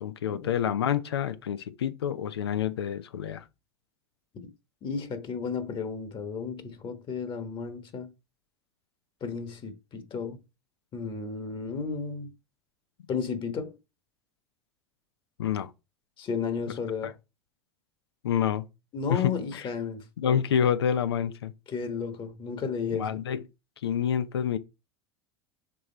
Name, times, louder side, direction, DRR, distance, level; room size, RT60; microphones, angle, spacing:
voice 1, 0.0-3.4 15.4-15.7 17.0-17.1 18.2-18.7 19.1-19.7 20.2-21.5 22.9-23.4 23.8-24.6, left 9 dB, 85° left, 0.6 m, -28 dB
voice 2, 4.8-8.1 9.2-10.4 10.9-12.3 13.1-13.8 16.2-17.1 18.9-20.1 21.7-23.2, left 5 dB, 40° left, 1.4 m, -33 dB
6.2 x 3.6 x 4.4 m
hypercardioid pair, 85°, 13 cm